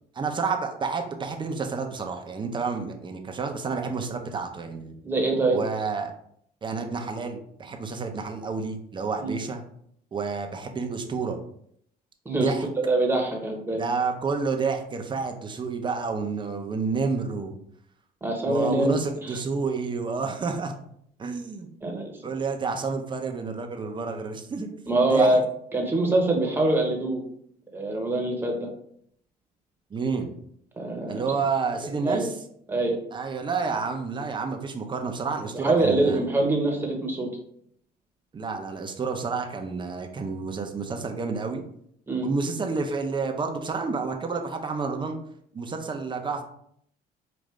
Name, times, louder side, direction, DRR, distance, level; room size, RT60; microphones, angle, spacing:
voice 1, 0.1-4.9 5.5-6.1 6.6-9.6 10.1-11.4 12.4-12.7 13.8-17.6 18.4-20.8 21.2-21.7 22.2-24.7 25.1-25.4 29.9-30.3 31.1-32.4 33.1-36.2 38.3-41.6 42.2-45.2 45.5-46.4, right 4 dB, 30° right, 4 dB, 0.7 m, -29 dB
voice 2, 5.0-5.6 9.2-9.4 12.2-13.8 18.2-19.4 21.8-22.1 24.9-25.4 25.7-27.2 27.7-28.7 30.8-31.2 32.0-32.3 32.7-33.0 35.5-37.3 42.1-42.3, right 2 dB, 10° right, 0 dB, 1.1 m, -24 dB
5.0 x 2.5 x 3.2 m, 0.68 s
cardioid pair, 110°, 17 cm